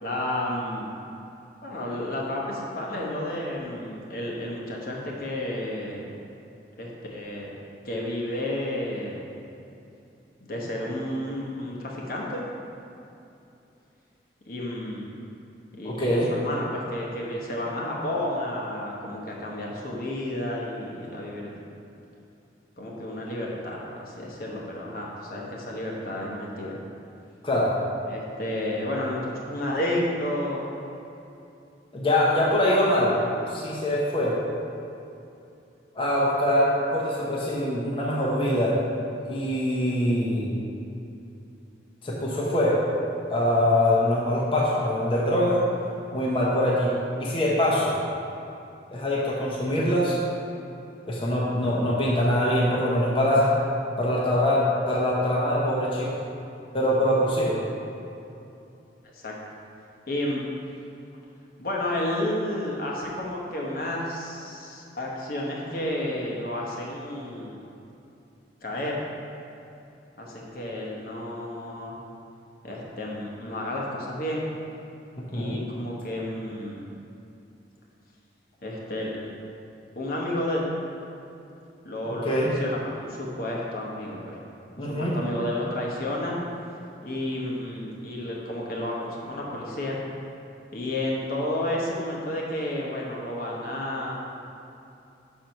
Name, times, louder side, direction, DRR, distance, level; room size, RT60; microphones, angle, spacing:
voice 1, 0.0-0.9 1.6-6.1 6.8-7.5 7.8-9.2 10.4-12.4 14.4-15.1 15.7-21.5 22.8-26.8 28.1-30.7 59.1-59.3 60.1-60.4 61.6-67.6 68.6-69.0 70.2-72.0 72.6-74.5 75.3-76.9 78.6-79.1 80.0-80.7 81.8-84.4 84.8-86.4 87.0-90.0 90.7-94.1, left 1 dB, 55° left, -3 dB, 1.0 m, -31 dB
voice 2, 15.8-16.3 27.4-27.7 31.9-33.2 33.5-34.4 35.9-38.7 39.3-40.5 42.0-42.8 43.3-45.6 46.1-46.9 47.2-48.0 48.9-50.2 51.1-53.5 54.0-56.1 56.7-57.6 75.2-75.6 82.1-82.5 84.8-85.2, left 1 dB, 30° left, -6 dB, 0.9 m, -23 dB
6.1 x 4.5 x 5.3 m, 2.7 s
head